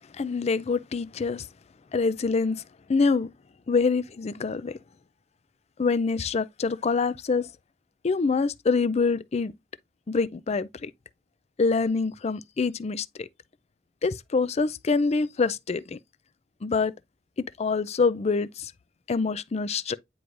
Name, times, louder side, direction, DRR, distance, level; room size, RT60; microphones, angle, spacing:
voice 1, 0.1-1.5 1.9-2.6 2.9-3.3 3.7-4.8 5.8-7.5 8.0-9.5 10.1-10.9 11.6-13.3 14.0-16.0 16.6-16.9 17.4-18.7 19.1-20.0, left 4 dB, 35° left, 0.4 m, -25 dB
9.5 x 4.6 x 2.5 m
head